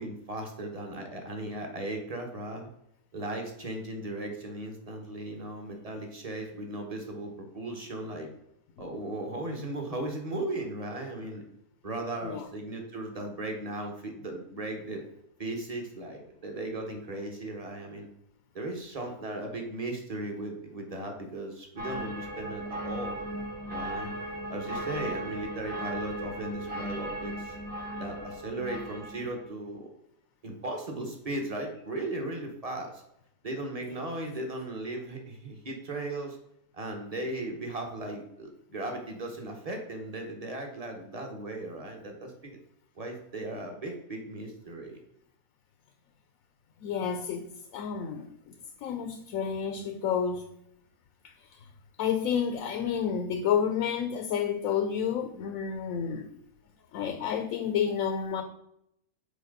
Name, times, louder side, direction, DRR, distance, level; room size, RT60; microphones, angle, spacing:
voice 1, 0.0-2.7 3.1-8.3 8.8-11.4 11.8-15.0 15.4-18.1 18.5-23.2 23.7-24.1 24.5-27.5 28.0-29.9 30.4-33.0 33.4-36.4 36.7-42.6 43.0-45.0, right 1 dB, 30° right, 3 dB, 1.1 m, -37 dB
sound 1, 21.8-29.4, right 1 dB, 45° right, 1.7 m, -37 dB
voice 2, 46.8-48.5 48.8-50.5 51.2-51.6 52.0-56.3 56.9-58.4, left 7 dB, 70° left, 6 dB, 1.0 m, -30 dB
6.7 x 4.5 x 3.9 m, 0.77 s
omnidirectional pair, 1.5 m